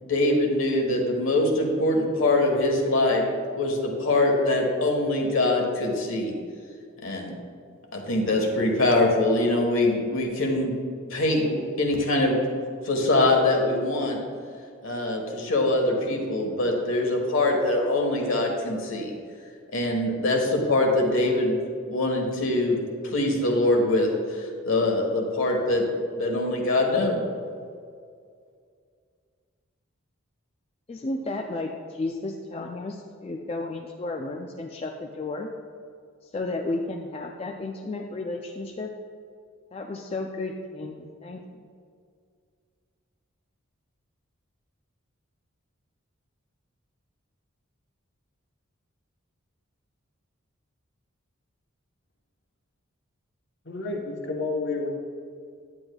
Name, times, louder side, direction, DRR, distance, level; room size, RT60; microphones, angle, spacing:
voice 1, 0.0-3.2 3.6-6.3 7.0-7.3 7.9-10.7 11.1-12.4 12.8-14.2 14.8-19.1 19.7-21.6 21.9-22.8 23.1-25.9 26.2-27.2, left 2 dB, 75° left, 1 dB, 1.3 m, -23 dB
voice 2, 30.9-35.5 36.2-38.9 39.7-41.4, left 2 dB, 30° left, 2 dB, 0.3 m, -33 dB
voice 3, 53.6-54.9, left 3 dB, 55° left, 1 dB, 1.0 m, -30 dB
9.6 x 8.7 x 2.3 m, 2.2 s
head